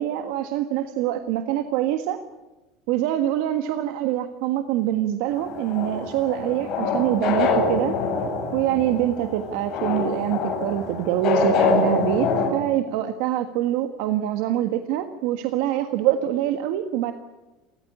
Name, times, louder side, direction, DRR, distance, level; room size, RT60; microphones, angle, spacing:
voice 1, 0.0-2.2 2.9-8.0 8.5-17.1, right 12 dB, 65° right, 7 dB, 1.5 m, -25 dB
sound 1, 5.3-12.5, left 4 dB, 40° left, 7.5 m, -25 dB
29.0 x 14.5 x 9.9 m, 1.1 s
cardioid pair, 170°, 0 cm